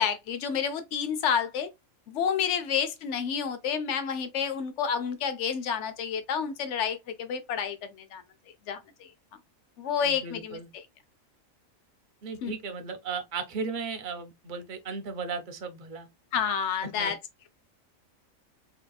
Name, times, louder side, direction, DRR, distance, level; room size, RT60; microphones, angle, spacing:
voice 1, 0.0-1.7 2.1-7.8 8.1-8.2 8.7-9.1 9.8-10.8 12.4-12.5 16.3-17.2, left 7 dB, 65° left, 0.9 m, -29 dB
voice 2, 10.0-10.7 12.2-16.1 16.8-17.1, right 5 dB, 50° right, 0.7 m, -36 dB
3.7 x 2.8 x 2.2 m
omnidirectional pair, 1.4 m